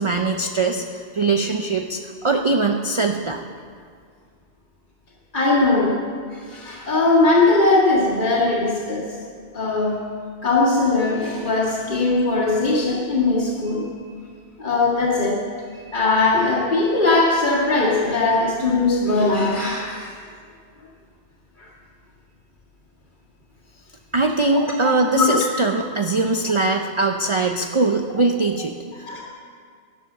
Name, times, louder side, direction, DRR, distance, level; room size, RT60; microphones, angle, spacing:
voice 1, 0.0-3.4 24.1-29.1, right 3 dB, 35° right, 4 dB, 0.5 m, -21 dB
voice 2, 5.3-6.0 6.3-9.2 9.5-10.0 10.4-13.9 14.6-15.4 15.7-20.2 21.6-21.7 24.5-25.3 29.1-29.2, left 3 dB, 50° left, -7 dB, 2.2 m, -20 dB
12.5 x 10.5 x 6.7 m, 2.1 s
omnidirectional pair, 1.1 m